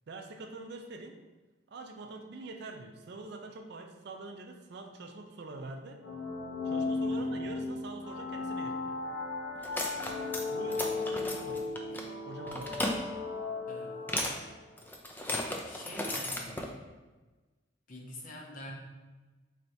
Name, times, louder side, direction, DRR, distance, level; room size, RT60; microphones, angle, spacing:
voice 1, 0.1-1.2 1.7-6.0 6.6-9.0 10.5-11.7 12.3-12.9, right 2 dB, 60° right, 4 dB, 0.4 m, -45 dB
sound 1, 6.0-14.7, left 3 dB, 80° left, 0.9 m, -36 dB
sound 2, 9.6-10.4 10.7-12.0 12.5-12.9 14.1-14.4 14.8-16.7, left 1 dB, 10° left, 0.3 m, -35 dB
voice 2, 13.7-14.0 15.6-16.8 17.9-18.7, left 1 dB, 45° left, -1 dB, 0.7 m, -46 dB
4.4 x 3.2 x 2.6 m, 1.2 s
head